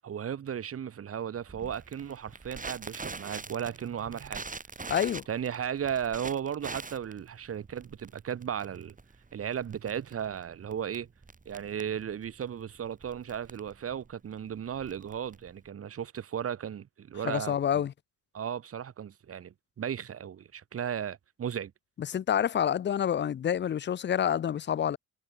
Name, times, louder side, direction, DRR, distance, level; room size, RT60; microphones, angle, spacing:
voice 1, 0.0-4.4 5.3-8.9 9.3-11.1 11.4-17.8 18.3-21.7, right 8 dB, 50° right, 1.6 m, -35 dB
Crackle, 1.5-15.7, right 4 dB, 25° right, 7.1 m, -44 dB
voice 2, 4.9-5.2 17.2-17.9 22.1-25.0, left 9 dB, 35° left, 0.5 m, -28 dB
cardioid pair, 90°, 30 cm